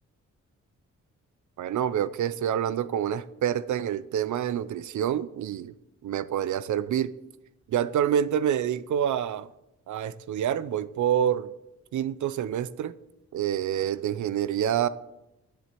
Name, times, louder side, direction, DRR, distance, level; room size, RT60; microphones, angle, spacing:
voice 1, 1.6-5.7 6.0-7.1 7.7-9.5 9.9-11.5 11.9-12.9 13.3-14.9, right 9 dB, 75° right, 16 dB, 0.6 m, -27 dB
7.4 x 7.3 x 8.2 m, 0.92 s
wide cardioid pair, 115°, 30 cm